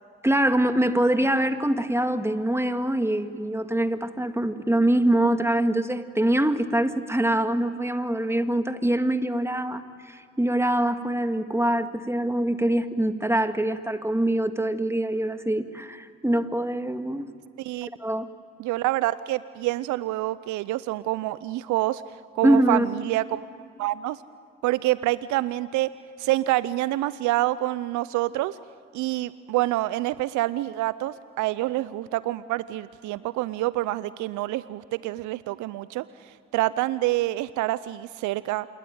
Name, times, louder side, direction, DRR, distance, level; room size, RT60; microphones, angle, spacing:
voice 1, 0.2-17.3 17.8-18.3 22.4-22.9, right 1 dB, 10° right, 8 dB, 2.0 m, -24 dB
voice 2, 17.6-17.9 18.6-22.0 22.4-23.5 23.8-24.2 24.6-25.9 26.2-28.6 28.9-38.7, right 16 dB, 75° right, 17 dB, 0.6 m, -27 dB
27.5 x 22.0 x 9.4 m, 2.4 s
hypercardioid pair, 40°, 30 cm